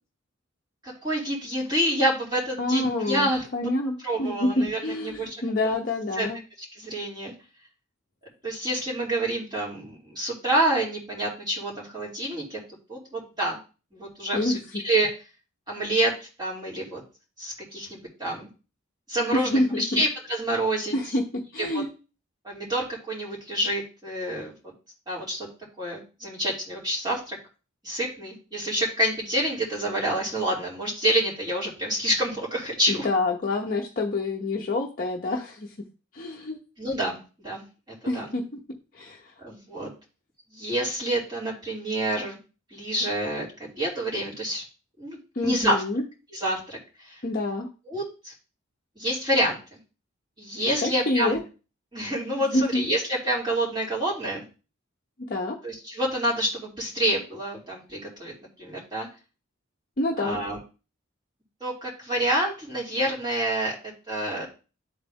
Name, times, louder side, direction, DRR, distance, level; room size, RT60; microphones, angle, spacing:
voice 1, 0.8-3.5 4.0-5.8 6.1-6.3 6.7-7.3 8.4-12.6 12.9-13.6 13.9-15.1 15.7-17.0 17.4-18.5 19.1-20.9 21.6-21.8 22.4-24.7 25.1-25.5 25.8-27.4 27.8-33.1 36.8-37.6 38.1-38.3 39.4-39.9 40.5-42.4 42.7-44.6 45.0-45.8 46.3-47.2 47.9-48.3 49.0-49.8 50.4-51.4 51.9-54.4 55.6-58.3 58.6-59.1 60.2-60.6 61.6-63.7 64.1-64.5, right 1 dB, 20° right, -5 dB, 3.1 m, -28 dB
voice 2, 2.6-6.4 14.3-14.6 19.3-20.0 20.9-21.9 32.9-35.7 36.1-36.6 38.1-38.4 38.9-39.3 45.3-46.0 47.2-47.7 50.8-51.4 52.3-52.8 55.3-55.6 60.0-60.4, left 2 dB, 45° left, 0 dB, 0.7 m, -27 dB
11.0 x 4.0 x 3.5 m, 0.34 s
head